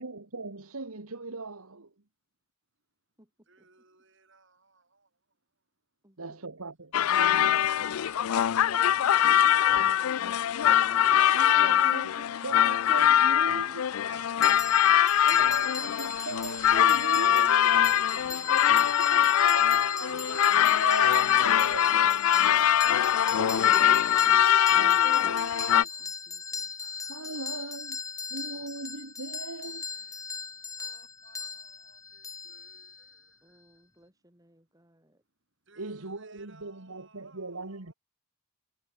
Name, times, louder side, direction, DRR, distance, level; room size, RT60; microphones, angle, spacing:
voice 1, 0.0-1.9 6.2-7.7 11.3-14.0 15.3-18.2 18.7-25.9 27.1-28.0 28.3-29.9 35.8-37.9, right 3 dB, 80° right, 1.9 m, -40 dB
voice 2, 3.5-5.7 7.2-10.0 14.0-14.6 17.8-18.3 26.8-28.5 29.1-29.3 29.6-34.0 34.9-35.2 35.6-37.9, right 4 dB, 55° right, 7.6 m, -60 dB
voice 3, 6.0-6.4 9.3-10.0 14.1-15.0 17.8-19.1 23.0-23.8 25.7-26.7 33.4-35.2, right 1 dB, 15° right, 3.0 m, -60 dB
sound 1, 6.9-25.8, left 10 dB, 75° left, 0.4 m, -23 dB
sound 2, 14.4-33.2, left 5 dB, 15° left, 1.3 m, -39 dB
head